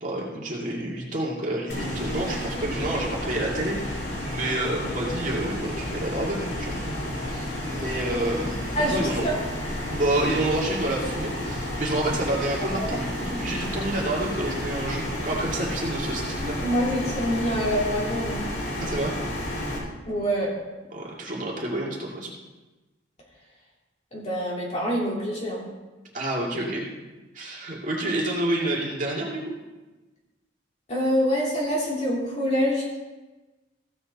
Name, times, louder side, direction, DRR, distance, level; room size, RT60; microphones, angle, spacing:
voice 1, 0.0-7.0 7.3-9.3 9.9-16.6 18.8-19.2 20.9-22.3 26.1-26.9 27.3-29.4, right 1 dB, 45° right, -3 dB, 2.1 m, -29 dB
sound 1, 1.7-19.8, left 1 dB, 60° left, 3.7 m, -31 dB
voice 2, 8.8-9.4 12.8-13.0 16.6-18.5 20.1-20.5 24.1-25.7 30.9-32.9, equal, 35° left, -4 dB, 3.0 m, -26 dB
15.0 x 7.7 x 4.0 m, 1.1 s
head